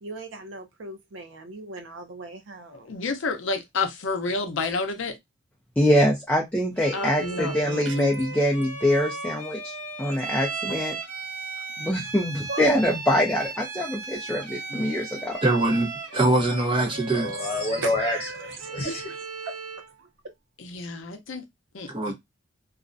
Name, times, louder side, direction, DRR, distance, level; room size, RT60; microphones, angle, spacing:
voice 1, 0.0-2.9 7.9-8.0 12.5-12.7 17.8-18.3 19.4-19.5 20.0-20.1, right 2 dB, 65° right, 0.5 m, -37 dB
voice 2, 2.7-5.1 6.9-8.1 10.6-10.7 20.6-21.4 21.7-22.1, left 3 dB, 70° left, 0.5 m, -30 dB
voice 3, 5.8-9.7 10.0-11.0 11.8-15.3, equal, 5° left, 0.4 m, -24 dB
Bowed string instrument, 6.8-19.9, right 4 dB, 85° right, 1.1 m, -36 dB
voice 4, 15.4-17.3 21.9-22.1, right 2 dB, 25° right, 0.7 m, -23 dB
voice 5, 17.1-19.1, left 2 dB, 30° left, 1.0 m, -29 dB
2.4 x 2.1 x 2.4 m
head